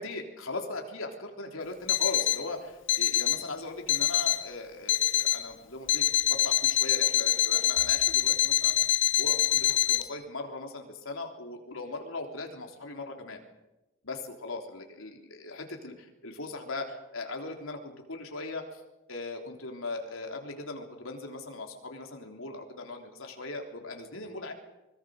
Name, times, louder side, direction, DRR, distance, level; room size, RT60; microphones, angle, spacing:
voice 1, 0.0-8.8 9.1-13.4 14.0-18.8 19.1-24.5, left 3 dB, 80° left, 3 dB, 3.5 m, -39 dB
Alarm, 1.9-2.5 2.9-3.5 3.9-4.5 4.9-5.5 5.9-10.0, left 12 dB, 60° left, 1.2 m, -25 dB
24.0 x 22.0 x 6.5 m, 1.0 s
head